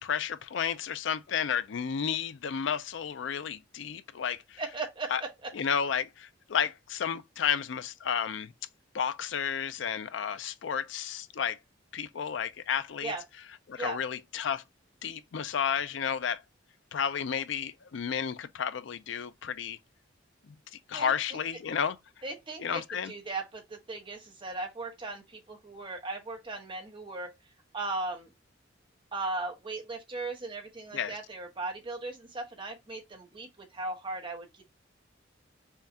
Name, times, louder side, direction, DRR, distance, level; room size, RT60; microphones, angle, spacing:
voice 1, 0.0-4.6 5.1-5.2 5.5-8.5 8.9-11.6 11.9-13.1 13.7-14.6 15.0-16.4 16.9-19.8 20.9-22.0 22.6-23.1 30.9-31.2, left 7 dB, 65° left, 0.4 m, -32 dB
voice 2, 4.6-5.5 13.0-13.2 13.8-14.0 20.9-21.4 22.2-27.3 27.7-28.3 29.1-34.6, right 3 dB, 25° right, 1.1 m, -37 dB
5.6 x 2.3 x 2.7 m
head